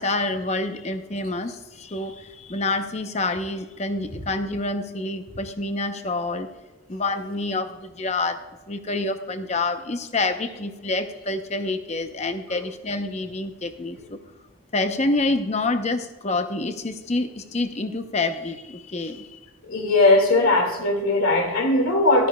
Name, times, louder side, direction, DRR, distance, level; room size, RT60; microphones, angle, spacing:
voice 1, 0.0-6.5 6.9-8.4 8.7-14.2 14.7-19.4, left 2 dB, 30° left, 0.7 m, -27 dB
voice 2, 19.7-22.3, left 2 dB, 90° left, 2.2 m, -19 dB
14.5 x 12.5 x 2.3 m
head